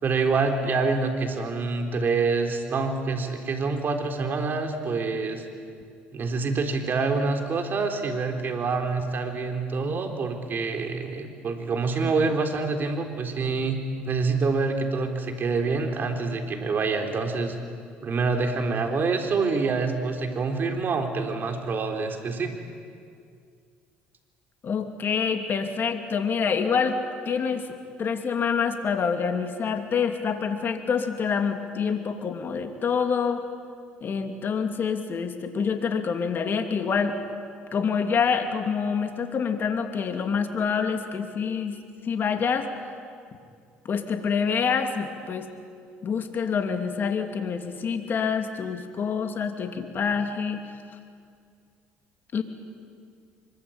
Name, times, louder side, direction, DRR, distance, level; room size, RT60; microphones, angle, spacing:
voice 1, 0.0-5.4 6.1-17.6 18.0-22.5, right 4 dB, 45° right, 4 dB, 3.9 m, -26 dB
voice 2, 24.6-27.0 27.2-27.7 28.0-33.4 34.0-37.1 37.7-41.8 42.0-42.7 43.8-45.5 46.0-50.6 52.3-52.4, left 6 dB, 45° left, 6 dB, 2.9 m, -26 dB
24.5 x 22.5 x 9.0 m, 2.3 s
supercardioid pair, 75°, 5 cm